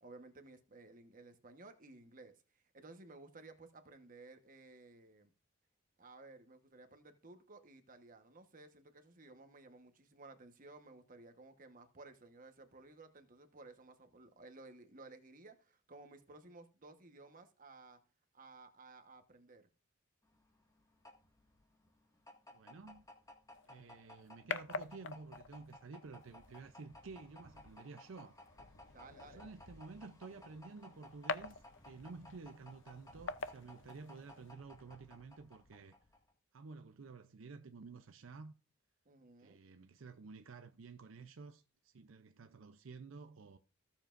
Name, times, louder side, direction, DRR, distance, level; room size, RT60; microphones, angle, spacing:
voice 1, 0.0-2.3 2.7-5.3 6.0-18.0 18.3-19.7 28.8-29.4 39.0-39.6, right 3 dB, 45° right, 1.2 m, -56 dB
sound 1, 20.3-36.3, left 1 dB, 20° left, 1.8 m, -58 dB
voice 2, 22.5-23.0 23.6-28.4 29.3-36.0 36.5-38.5 39.4-43.6, right 4 dB, 75° right, 0.5 m, -52 dB
sound 2, 23.5-34.5, left 5 dB, 65° left, 0.6 m, -47 dB
16.0 x 7.2 x 2.5 m
head